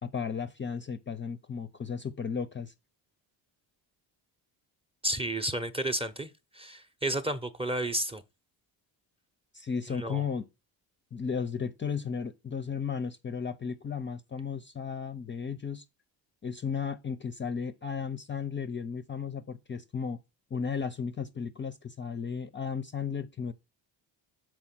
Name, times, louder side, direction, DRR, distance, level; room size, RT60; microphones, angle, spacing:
voice 1, 0.0-2.7 9.5-10.4 11.1-15.8 16.4-20.2 20.5-23.5, left 6 dB, 25° left, 0.5 m, -34 dB
voice 2, 5.0-8.2 9.9-10.2, right 1 dB, 10° right, 0.7 m, -32 dB
6.0 x 4.6 x 5.8 m
cardioid pair, 100°, 46 cm